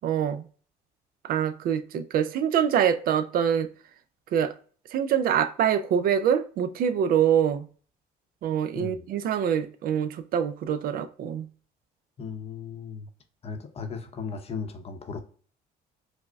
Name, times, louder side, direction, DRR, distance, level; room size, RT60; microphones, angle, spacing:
voice 1, 0.0-0.4 1.2-3.7 4.3-4.5 4.9-7.7 8.4-11.5, right 8 dB, 60° right, 0.4 m, -25 dB
voice 2, 12.2-13.1 13.4-15.2, left 5 dB, 35° left, 0.6 m, -36 dB
4.8 x 2.0 x 2.2 m
cardioid pair, 110°, 17 cm